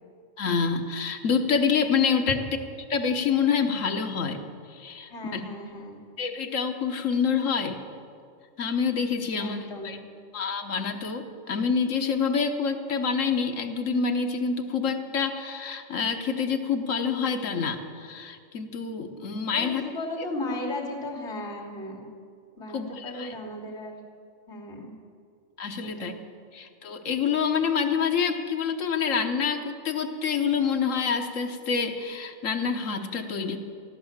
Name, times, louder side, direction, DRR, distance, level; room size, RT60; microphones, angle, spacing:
voice 1, 0.4-2.4 2.9-5.4 6.2-7.8 8.6-10.0 10.3-19.8 20.2-20.3 22.7-23.3 25.6-26.1 26.5-33.6, left 6 dB, 85° left, 5 dB, 1.5 m, -27 dB
voice 2, 5.1-6.0 9.3-10.0 19.5-22.1 22.6-24.0 24.5-24.9 25.8-26.2, left 1 dB, 60° left, -4 dB, 3.3 m, -36 dB
14.0 x 13.0 x 7.3 m, 2.3 s
omnidirectional pair, 1.3 m